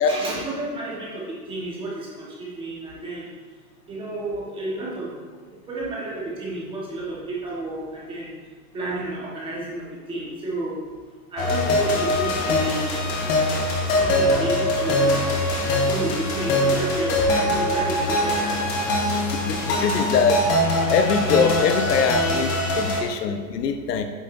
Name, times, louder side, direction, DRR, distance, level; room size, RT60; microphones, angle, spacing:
voice 1, 0.0-3.3 3.9-5.1 5.4-8.3 8.7-10.8 11.3-13.0 13.9-15.2 15.9-18.7, right 2 dB, 10° right, -5 dB, 1.2 m, -31 dB
sound 1, 11.4-23.0, left 1 dB, 25° left, 0.9 m, -22 dB
voice 2, 19.3-20.4 20.9-24.0, left 6 dB, 75° left, 7 dB, 1.0 m, -22 dB
9.1 x 7.4 x 2.6 m, 1.5 s
hypercardioid pair, 160°, 49 cm